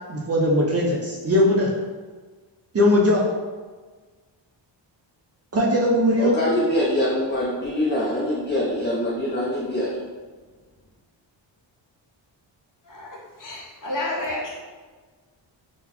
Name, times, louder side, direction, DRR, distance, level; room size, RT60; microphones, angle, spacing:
voice 1, 0.1-1.7 2.7-3.2 5.5-6.3, left 1 dB, 35° right, -3 dB, 0.4 m, -19 dB
voice 2, 6.2-9.9, left 1 dB, 25° left, -6 dB, 0.5 m, -24 dB
voice 3, 12.8-14.6, left 1 dB, 45° left, -4 dB, 0.9 m, -31 dB
3.8 x 2.1 x 2.9 m, 1.4 s
wide cardioid pair, 125°, 46 cm